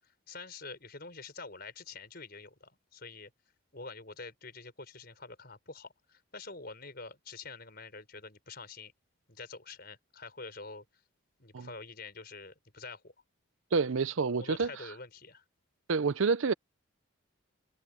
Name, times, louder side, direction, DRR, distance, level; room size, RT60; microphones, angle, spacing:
voice 1, 0.3-3.3 3.7-8.9 9.3-10.8 11.4-13.1 14.4-15.4, left 3 dB, 45° left, 5.3 m, -46 dB
voice 2, 13.7-14.7 15.9-16.5, right 4 dB, 70° right, 0.6 m, -28 dB
head